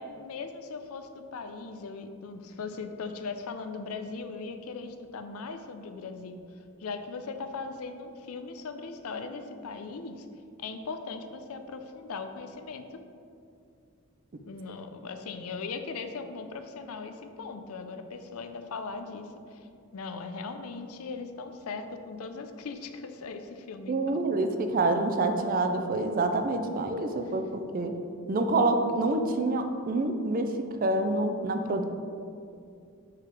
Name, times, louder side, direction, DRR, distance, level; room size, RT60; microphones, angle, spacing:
voice 1, 0.0-6.4 6.8-10.3 10.6-13.0 14.5-19.7 19.9-24.2, left 4 dB, 75° left, 7 dB, 0.5 m, -39 dB
voice 2, 23.9-27.9 28.3-30.5 30.8-31.8, right 2 dB, 40° right, 6 dB, 0.4 m, -27 dB
4.8 x 4.8 x 4.7 m, 2.4 s
head